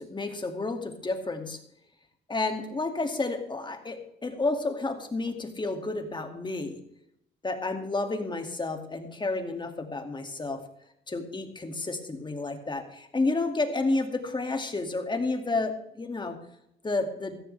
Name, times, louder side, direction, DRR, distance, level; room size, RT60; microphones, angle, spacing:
voice 1, 0.0-1.6 2.3-6.8 7.4-10.6 11.1-16.4 16.8-17.4, left 3 dB, 25° left, 5 dB, 2.4 m, -31 dB
15.0 x 14.5 x 3.4 m, 0.76 s
cardioid pair, 90°, 20 cm